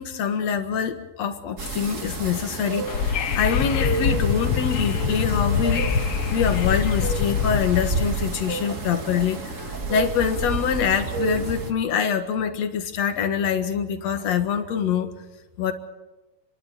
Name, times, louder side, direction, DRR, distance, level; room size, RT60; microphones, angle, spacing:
voice 1, 0.0-2.9 3.3-5.9 6.3-15.1 15.6-15.7, left 7 dB, 60° left, 7 dB, 2.6 m, -25 dB
sound 1, 1.6-11.7, right 3 dB, 30° right, 1.8 m, -30 dB
Wind / Subway metro underground, 2.9-7.9, left 8 dB, 75° left, 1.3 m, -24 dB
sound 2, 4.9-8.4, right 3 dB, 75° right, 8.6 m, -43 dB
29.0 x 12.0 x 9.8 m, 1.1 s
omnidirectional pair, 3.8 m